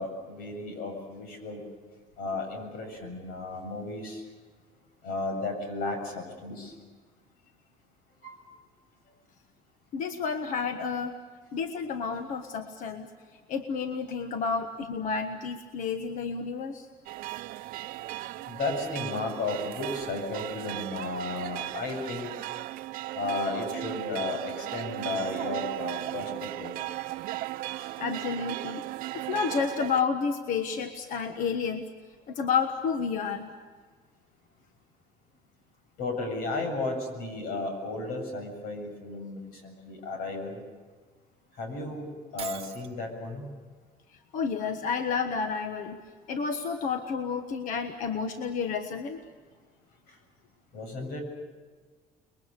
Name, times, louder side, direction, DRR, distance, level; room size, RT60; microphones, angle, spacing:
voice 1, 0.0-1.6 2.2-4.2 5.0-6.7 8.2-8.4 18.5-22.3 23.1-26.7 27.8-27.9 36.0-40.6 41.6-43.5 50.7-51.2, left 3 dB, 90° left, 4 dB, 7.4 m, -34 dB
voice 2, 9.9-11.1 11.5-13.1 13.5-16.9 28.0-28.8 29.1-31.8 32.3-33.5 44.3-46.0 46.3-49.2, left 5 dB, 60° left, 7 dB, 1.4 m, -30 dB
sound 1, 17.1-30.0, right 16 dB, 75° right, 0.6 m, -36 dB
Shatter, 42.4-42.9, right 10 dB, 40° right, 0.9 m, -40 dB
29.5 x 22.0 x 6.7 m, 1.4 s
cardioid pair, 155°, 15 cm